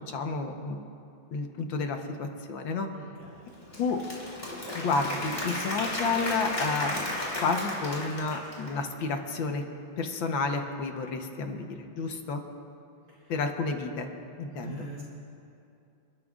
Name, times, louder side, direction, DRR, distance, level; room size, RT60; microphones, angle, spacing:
voice 1, 0.1-0.8 1.3-2.9 3.8-4.0 4.7-9.6 10.0-12.4 13.3-14.1 14.4-14.9, left 4 dB, 75° left, 4 dB, 1.7 m, -31 dB
voice 2, 2.9-3.5 13.1-13.3 14.5-15.0, right 3 dB, 65° right, -5 dB, 4.4 m, -44 dB
Applause / Crowd, 3.5-8.9, left 1 dB, 30° left, 3.1 m, -34 dB
29.0 x 12.5 x 2.4 m, 2.7 s
omnidirectional pair, 2.2 m